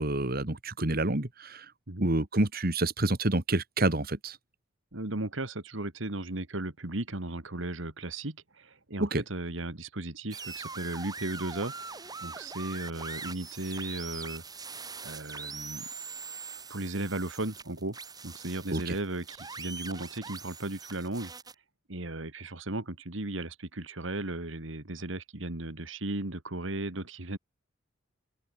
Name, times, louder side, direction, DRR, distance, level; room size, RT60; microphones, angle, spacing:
voice 1, 0.0-1.7 2.0-4.4 9.0-9.2 18.7-18.9, right 2 dB, 45° right, 2.0 m, -28 dB
voice 2, 4.9-14.4 15.0-15.9 16.7-18.0 18.2-21.3 21.9-27.4, right 2 dB, 65° right, 2.3 m, -36 dB
sound 1, 10.3-21.5, right 4 dB, 20° right, 4.9 m, -42 dB
open air
head